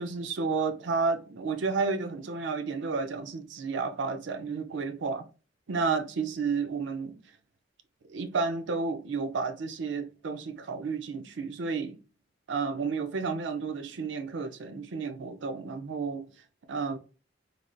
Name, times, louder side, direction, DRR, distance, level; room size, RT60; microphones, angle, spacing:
voice 1, 0.0-5.2 5.7-7.2 8.1-12.0 12.5-16.3 16.7-17.0, right 4 dB, 75° right, 0.4 m, -31 dB
3.2 x 2.5 x 2.2 m
head